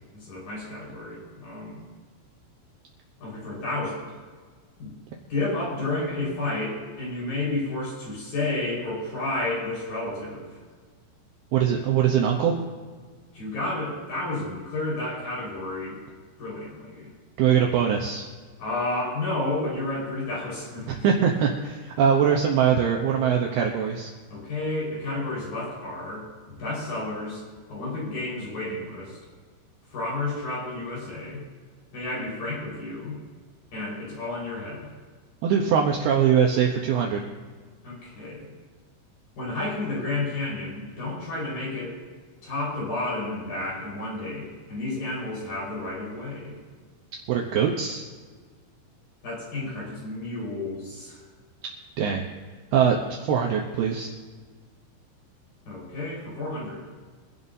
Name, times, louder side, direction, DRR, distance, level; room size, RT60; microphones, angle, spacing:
voice 1, 0.1-1.8 3.2-4.1 4.8-4.9 5.3-10.6 13.3-16.0 16.4-17.1 18.6-21.1 24.3-27.4 27.7-29.2 29.9-31.4 31.9-33.2 33.7-34.9 37.8-38.5 39.4-42.0 42.4-46.6 49.2-51.2 55.7-56.9, left 2 dB, 45° left, -5 dB, 6.1 m, -31 dB
voice 2, 11.5-12.6 17.4-18.3 20.9-24.1 35.4-37.3 47.3-48.1 52.0-52.3 52.7-54.1, right 8 dB, 90° right, 0 dB, 2.2 m, -22 dB
25.0 x 11.0 x 2.7 m, 1.5 s
omnidirectional pair, 6.0 m